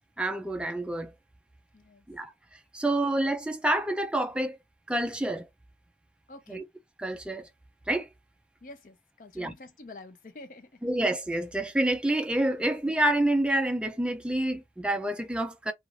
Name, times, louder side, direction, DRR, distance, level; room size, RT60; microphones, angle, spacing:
voice 1, 0.2-1.1 2.1-4.6 4.9-5.5 6.5-6.6 7.0-7.5 7.9-8.1 9.4-9.5 10.8-15.7, right 1 dB, 5° right, 0.3 m, -28 dB
voice 2, 1.7-2.1 6.3-6.6 8.6-10.9, left 2 dB, 50° left, 0.5 m, -48 dB
2.4 x 2.3 x 3.1 m
head